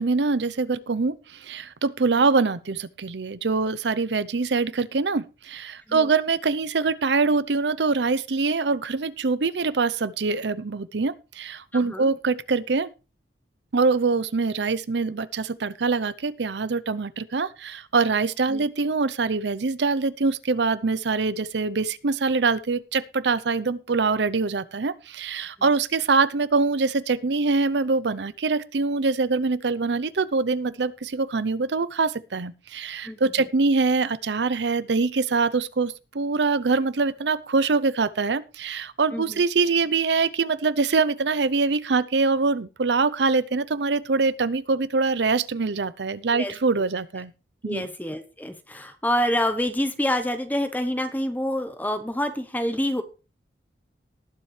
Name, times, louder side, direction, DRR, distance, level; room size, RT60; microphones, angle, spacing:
voice 1, 0.0-12.9 13.7-47.3 47.6-47.9, right 4 dB, 80° right, 18 dB, 0.7 m, -24 dB
voice 2, 11.7-12.1 18.5-18.6 33.0-33.5 39.1-39.4 46.3-46.6 47.6-53.0, left 1 dB, 10° left, 9 dB, 0.9 m, -27 dB
19.0 x 7.4 x 3.3 m, 0.31 s
head